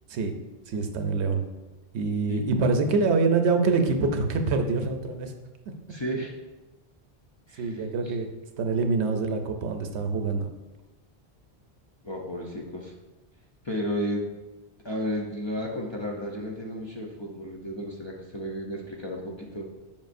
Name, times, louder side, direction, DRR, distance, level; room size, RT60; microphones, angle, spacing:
voice 1, 0.7-1.4 1.9-5.3 7.6-8.3 8.6-10.5, right 4 dB, 85° right, 6 dB, 1.0 m, -25 dB
voice 2, 5.9-6.3 7.5-8.2 12.0-12.9 13.6-14.2 14.8-19.8, equal, 35° left, -1 dB, 0.5 m, -33 dB
7.3 x 5.4 x 2.6 m, 1.1 s
omnidirectional pair, 1.1 m